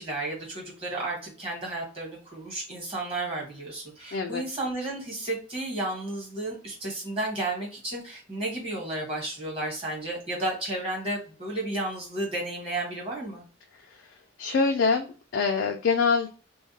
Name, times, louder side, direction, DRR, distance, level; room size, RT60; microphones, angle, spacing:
voice 1, 0.0-13.4, right 2 dB, 30° right, -2 dB, 1.1 m, -32 dB
voice 2, 4.1-4.4 14.4-16.3, left 4 dB, 60° left, 3 dB, 0.3 m, -24 dB
2.3 x 2.2 x 2.6 m, 0.37 s
head